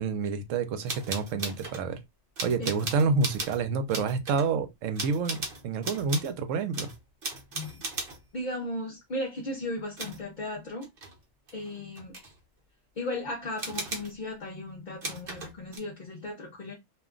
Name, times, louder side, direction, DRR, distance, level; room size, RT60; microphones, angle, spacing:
voice 1, 0.0-2.0 2.4-6.9, right 4 dB, 75° right, 1.0 m, -28 dB
sound 1, 0.9-1.8 2.4-3.6 3.9-4.5 5.0-6.3 6.7-8.2 10.0-10.2 10.8-11.2 11.5-12.4 13.6-14.1 15.0-15.8, right 3 dB, 50° right, 1.0 m, -37 dB
voice 2, 2.6-2.9 7.5-7.8 8.3-10.9 11.5-12.2 13.0-16.7, left 1 dB, 50° left, 0.6 m, -36 dB
2.5 x 2.1 x 3.6 m
omnidirectional pair, 1.3 m